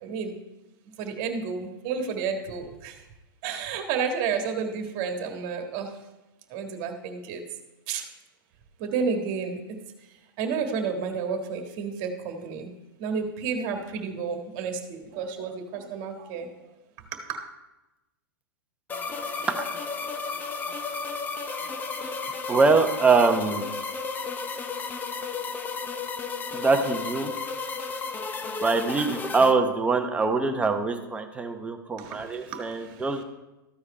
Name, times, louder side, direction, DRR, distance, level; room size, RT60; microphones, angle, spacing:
voice 1, 0.0-0.4 1.0-3.0 3.4-6.0 6.5-7.4 7.9-8.1 8.8-9.6 10.4-12.7 13.0-16.5 17.1-17.5 32.0-33.1, right 5 dB, 45° right, 5 dB, 1.6 m, -31 dB
sound 1, 18.9-29.5, left 4 dB, 15° left, 0.6 m, -33 dB
voice 2, 22.5-23.7 26.5-27.3 28.6-33.2, right 4 dB, 10° right, 4 dB, 0.9 m, -23 dB
14.0 x 4.8 x 4.3 m, 1.0 s
hypercardioid pair, 125°, 12 cm